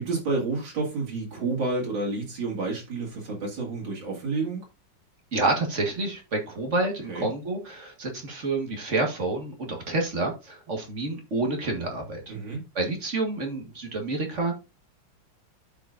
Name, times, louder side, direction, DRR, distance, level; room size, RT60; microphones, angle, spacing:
voice 1, 0.0-4.6 7.1-7.3 12.3-12.6, right 3 dB, 85° right, 3.2 m, -30 dB
voice 2, 5.3-12.2 12.8-14.5, right 2 dB, 40° right, 1.9 m, -28 dB
13.0 x 5.0 x 2.6 m
omnidirectional pair, 2.0 m